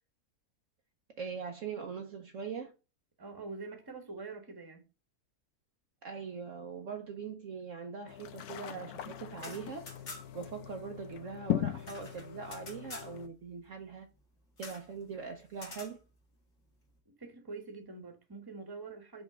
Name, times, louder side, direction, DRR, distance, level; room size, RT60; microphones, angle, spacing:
voice 1, 1.2-2.7 6.0-9.8 10.3-14.1 14.6-16.0, right 5 dB, 60° right, 1.0 m, -42 dB
voice 2, 3.2-4.8 17.1-19.2, right 3 dB, 15° right, 1.2 m, -45 dB
sound 1, 8.1-13.3, left 12 dB, 75° left, 1.1 m, -39 dB
sound 2, 9.4-10.5 10.8-10.9 11.1-13.1 14.6-14.9 15.5-15.9, left 3 dB, 50° left, 1.9 m, -48 dB
5.3 x 3.8 x 4.9 m
omnidirectional pair, 1.6 m